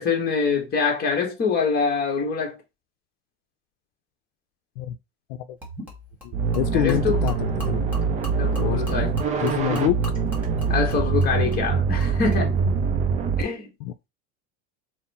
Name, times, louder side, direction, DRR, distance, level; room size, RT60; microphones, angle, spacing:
voice 1, 0.0-2.6 6.7-7.2 8.4-9.1 10.7-12.5 13.4-13.7, left 5 dB, 30° left, 1.2 m, -24 dB
Gurgling / Liquid, 5.6-12.4, left 1 dB, 5° right, 1.6 m, -42 dB
voice 2, 6.2-7.8 8.6-8.8 9.4-10.0 13.8-13.9, left 13 dB, 80° left, 0.5 m, -26 dB
sound 1, 6.3-13.4, right 5 dB, 25° right, 0.4 m, -24 dB
4.1 x 2.1 x 4.1 m
cardioid pair, 160°, 32 cm